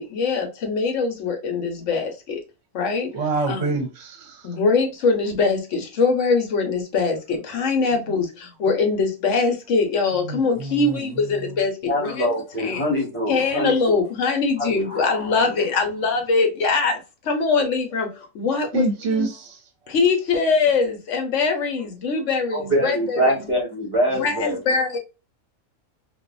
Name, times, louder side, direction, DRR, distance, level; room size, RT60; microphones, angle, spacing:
voice 1, 0.0-2.4 2.7-3.1 3.5-3.7 4.4-12.3 12.6-12.9 13.3-18.9 19.1-19.3 19.9-23.2 24.1-25.0, left 4 dB, 65° left, 1.1 m, -22 dB
voice 2, 3.1-4.5 8.0-8.1 10.2-11.4 18.7-19.6, right 3 dB, 55° right, 1.0 m, -27 dB
voice 3, 11.9-14.0 14.6-15.7 22.5-24.6, equal, 25° right, 1.1 m, -24 dB
2.6 x 2.5 x 2.3 m
omnidirectional pair, 1.5 m